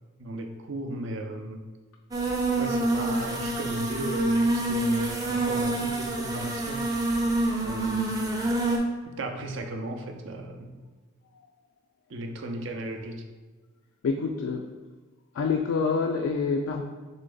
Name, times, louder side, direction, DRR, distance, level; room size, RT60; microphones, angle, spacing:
voice 1, 0.2-1.7 2.6-7.0 7.6-8.1 9.1-10.8 12.1-13.2, right 1 dB, 65° right, 4 dB, 0.5 m, -35 dB
sound 1, 2.1-8.8, right 2 dB, 20° right, 0.5 m, -27 dB
voice 2, 14.0-14.7 15.3-16.8, left 4 dB, 85° left, 3 dB, 0.3 m, -26 dB
3.9 x 3.4 x 3.7 m, 1.3 s
head